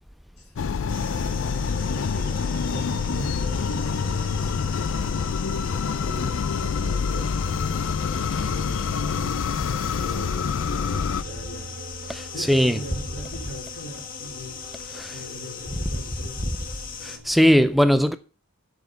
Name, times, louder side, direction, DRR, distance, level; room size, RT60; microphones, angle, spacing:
sound 1, 0.6-11.2, left 5 dB, 60° left, 0.4 m, -26 dB
sound 2, 0.8-17.5, right 2 dB, 75° right, 3.1 m, -45 dB
sound 3, 0.9-17.2, left 5 dB, 40° left, 1.5 m, -39 dB
voice 1, 1.5-7.6 8.4-11.8 12.3-14.6 15.1-16.7, equal, 85° left, 3.4 m, -40 dB
voice 2, 12.1-12.8 14.9-15.2 17.0-18.2, equal, ahead, 0.4 m, -20 dB
7.9 x 7.2 x 6.7 m
head